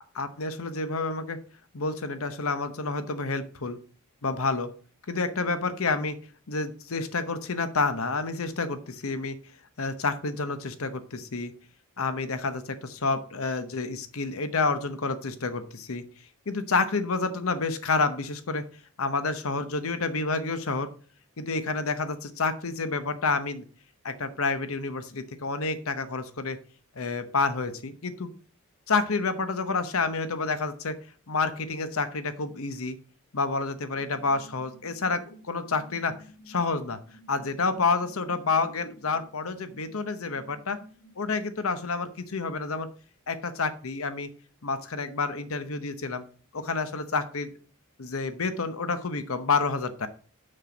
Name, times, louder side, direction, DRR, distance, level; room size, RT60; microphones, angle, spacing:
voice 1, 0.2-1.4 1.7-3.8 4.2-4.7 5.1-6.2 6.5-9.4 9.8-11.5 12.0-16.0 16.5-18.6 19.0-20.9 21.4-23.7 24.0-26.6 27.0-28.3 28.9-31.0 31.3-33.0 33.3-36.2 36.5-37.0 37.3-40.8 41.2-42.9 43.3-44.3 44.6-46.2 46.5-47.5 48.0-50.1, left 4 dB, 65° left, 11 dB, 0.9 m, -29 dB
sound 1, 33.9-41.3, equal, 45° left, 2.2 m, -53 dB
6.5 x 6.0 x 5.0 m, 0.42 s
head